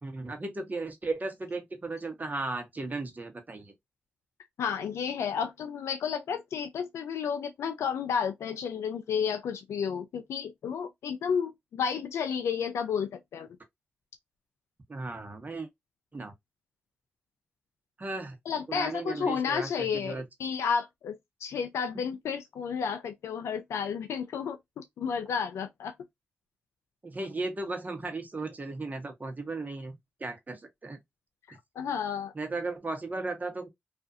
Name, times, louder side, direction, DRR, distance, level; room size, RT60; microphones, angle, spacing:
voice 1, 0.0-3.7 14.9-15.7 16.1-16.3 18.0-18.4 18.7-20.2 27.0-31.0 32.3-33.7, right 3 dB, 35° right, 1.0 m, -36 dB
voice 2, 4.6-13.5 18.5-21.1 21.4-25.9 31.5-32.3, left 6 dB, 80° left, 0.3 m, -32 dB
2.5 x 2.4 x 2.5 m
supercardioid pair, 40°, 5 cm